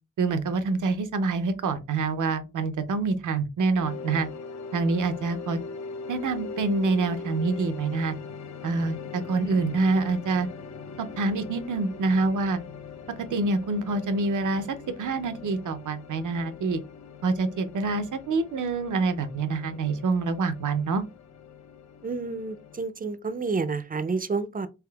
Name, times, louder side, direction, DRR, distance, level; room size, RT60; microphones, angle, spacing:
voice 1, 0.2-4.3 4.7-5.6 6.1-8.1 8.6-10.5 11.0-12.6 13.3-16.8 17.2-21.0, right 3 dB, 80° right, 0.5 m, -26 dB
sound 1, 3.8-22.8, left 5 dB, 65° left, 0.5 m, -41 dB
voice 2, 22.0-24.7, right 4 dB, 30° right, 0.4 m, -29 dB
3.5 x 3.2 x 2.2 m
cardioid pair, 50°, 30 cm